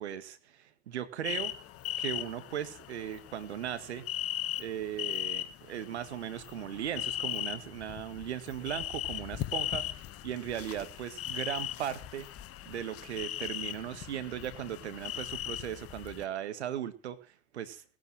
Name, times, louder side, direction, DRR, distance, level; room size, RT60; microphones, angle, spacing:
voice 1, 0.0-1.5 2.0-4.1 4.6-9.9 10.2-12.3 12.7-17.8, right 10 dB, 85° right, 12 dB, 1.8 m, -38 dB
sound 1, 1.2-16.2, left 13 dB, 45° left, 1.5 m, -38 dB
18.0 x 9.3 x 7.6 m, 0.37 s
hypercardioid pair, 85°, 33 cm